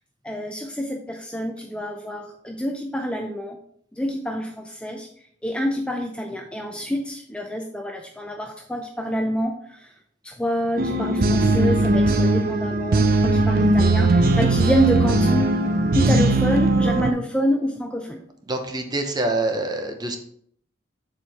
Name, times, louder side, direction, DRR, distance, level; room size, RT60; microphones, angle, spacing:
voice 1, 0.2-3.6 3.9-5.1 5.4-9.9 10.2-15.5 15.9-18.2, equal, 5° left, 2 dB, 0.4 m, -27 dB
sound 1, 10.8-17.1, right 2 dB, 45° right, 0.5 m, -19 dB
voice 2, 18.5-20.2, right 2 dB, 20° right, 5 dB, 0.7 m, -26 dB
7.3 x 4.5 x 3.4 m, 0.65 s
head